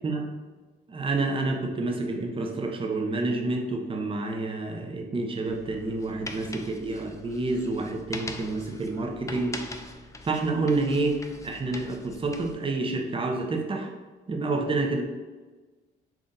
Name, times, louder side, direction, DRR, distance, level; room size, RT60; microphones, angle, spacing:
voice 1, 0.9-9.6 10.2-13.9 14.3-15.0, right 3 dB, 25° right, 2 dB, 0.7 m, -28 dB
sound 1, 5.4-12.5, left 2 dB, 15° left, 0.4 m, -42 dB
3.7 x 2.4 x 3.9 m, 1.3 s
cardioid pair, 90°, 20 cm